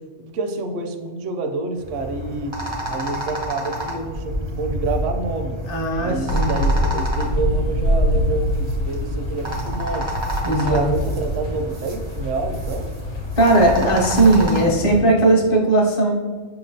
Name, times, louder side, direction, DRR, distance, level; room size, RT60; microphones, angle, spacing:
voice 1, 0.2-2.6 2.9-5.6 6.0-10.1 10.5-12.9, right 3 dB, 75° right, 5 dB, 0.9 m, -28 dB
sound 1, 1.8-15.0, equal, 40° right, 0.4 m, -29 dB
voice 2, 5.7-6.6 10.4-10.9 13.4-16.1, right 2 dB, 35° left, -1 dB, 0.6 m, -17 dB
sound 2, 6.3-14.5, equal, 65° left, 1.0 m, -25 dB
5.6 x 2.9 x 2.7 m, 1.5 s
omnidirectional pair, 1.3 m